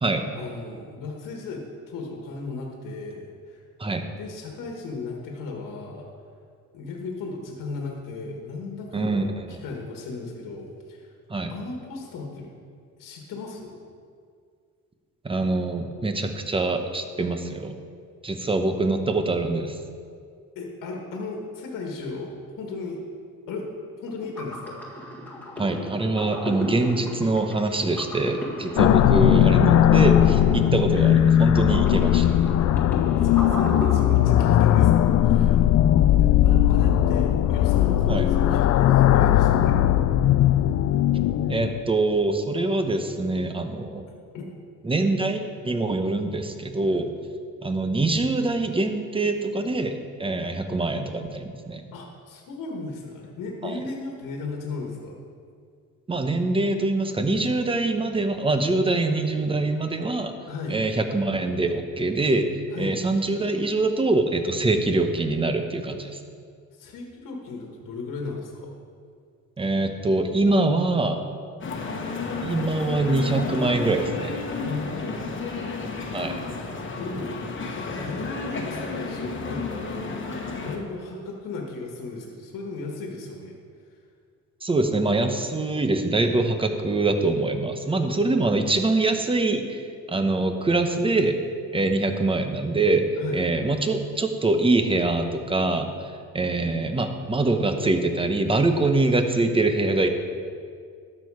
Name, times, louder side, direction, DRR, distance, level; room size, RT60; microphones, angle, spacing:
voice 1, 0.3-3.6 4.2-6.1 6.7-11.1 11.5-12.5 13.0-13.8 20.5-23.0 23.5-23.7 23.9-24.8 33.1-35.6 36.2-39.8 44.3-44.5 51.9-55.2 60.5-60.8 62.7-62.9 66.7-68.7 74.6-75.6 77.0-83.5 93.2-93.5, left 3 dB, 80° left, 0 dB, 1.5 m, -35 dB
voice 2, 8.9-9.6 11.3-11.5 15.2-17.8 18.2-19.8 25.6-32.4 38.1-38.3 41.5-44.0 44.8-47.1 47.6-51.8 53.6-53.8 56.1-60.3 60.7-62.5 62.8-66.2 69.6-71.2 72.4-74.4 76.1-76.4 84.6-91.4 91.7-93.1 93.3-100.1, right 2 dB, 15° right, 7 dB, 0.8 m, -24 dB
sound 1, 24.1-34.9, equal, 5° left, 1.7 m, -35 dB
sound 2, 28.8-41.8, left 11 dB, 55° left, 0.4 m, -18 dB
sound 3, 71.6-80.8, left 4 dB, 40° left, 1.3 m, -32 dB
12.5 x 6.6 x 4.8 m, 2.2 s
cardioid pair, 110°, 32 cm